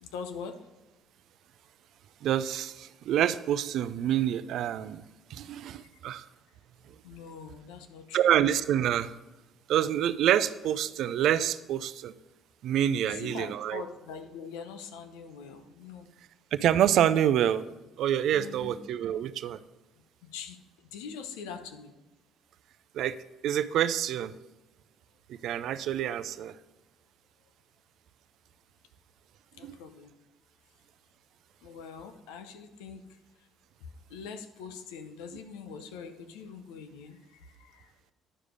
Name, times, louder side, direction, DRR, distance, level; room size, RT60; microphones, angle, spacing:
voice 1, 0.0-0.6 5.8-5.9 7.0-8.2 13.0-16.1 18.3-18.7 20.2-20.6 20.9-21.9 29.6-30.1 31.6-33.1 34.1-37.9, left 6 dB, 90° left, 8 dB, 0.7 m, -43 dB
voice 2, 2.2-5.0 5.3-6.3 8.1-9.2 9.7-12.1 12.6-13.8 16.5-17.6 18.0-19.6 22.9-23.2 23.4-24.3 25.3-26.6 29.6-29.8, right 10 dB, 70° right, 13 dB, 0.4 m, -27 dB
11.0 x 5.0 x 5.1 m, 1.1 s
supercardioid pair, 70°, 0 cm